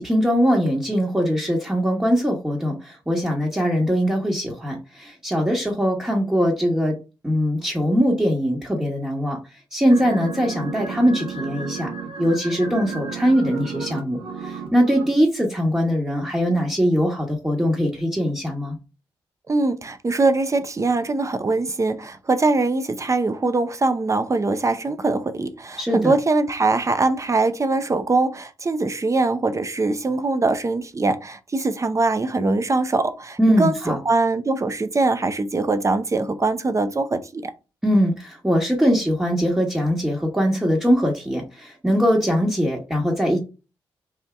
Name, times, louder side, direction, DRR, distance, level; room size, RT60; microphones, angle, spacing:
voice 1, 0.0-7.0 7.2-9.4 9.7-18.7 25.8-26.2 33.4-34.0 37.8-43.4, equal, 10° right, 1.3 m, -21 dB
sound 1, 9.9-15.1, right 5 dB, 70° right, 1.3 m, -33 dB
voice 2, 19.5-37.5, right 3 dB, 30° right, 0.6 m, -22 dB
3.5 x 2.6 x 3.4 m
supercardioid pair, 45°, 10 cm